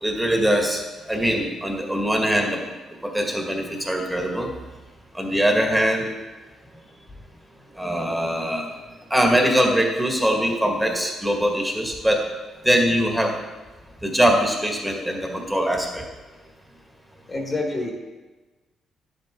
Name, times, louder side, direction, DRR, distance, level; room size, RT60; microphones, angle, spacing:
voice 1, 0.0-0.8 1.1-2.6 3.0-4.5 5.1-6.1 7.8-8.7 9.1-12.2 12.6-13.3 14.0-16.0, equal, 5° right, 1 dB, 1.7 m, -22 dB
voice 2, 17.3-17.9, left 2 dB, 30° left, 2 dB, 1.5 m, -27 dB
10.5 x 7.9 x 3.7 m, 1.2 s
cardioid pair, 90°, 0 cm